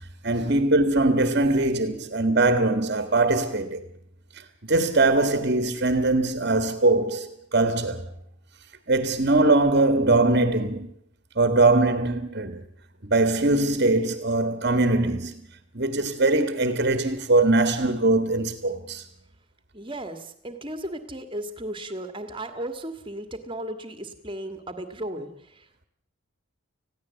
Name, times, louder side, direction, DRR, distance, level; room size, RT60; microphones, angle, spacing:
voice 1, 0.2-3.8 4.6-8.1 8.9-10.9 11.3-12.6 13.0-15.3 15.7-19.0, right 2 dB, 45° right, 1.6 m, -21 dB
voice 2, 19.7-25.8, right 1 dB, 25° right, 1.8 m, -35 dB
20.5 x 15.5 x 8.2 m
head